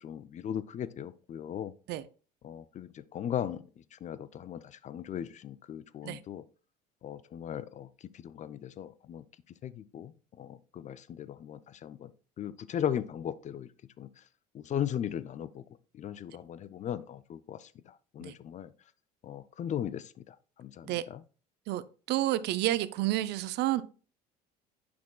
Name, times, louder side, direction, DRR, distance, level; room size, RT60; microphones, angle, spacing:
voice 1, 0.0-1.7 2.4-3.6 3.9-6.4 7.0-7.9 8.1-9.2 9.6-12.1 12.4-13.7 14.0-14.1 14.5-15.6 15.9-17.7 18.1-18.7 19.2-21.2, left 9 dB, 35° left, 0.5 m, -37 dB
voice 2, 21.7-23.8, right 15 dB, 55° right, 0.5 m, -30 dB
8.5 x 5.8 x 2.2 m
hypercardioid pair, 65°, 20 cm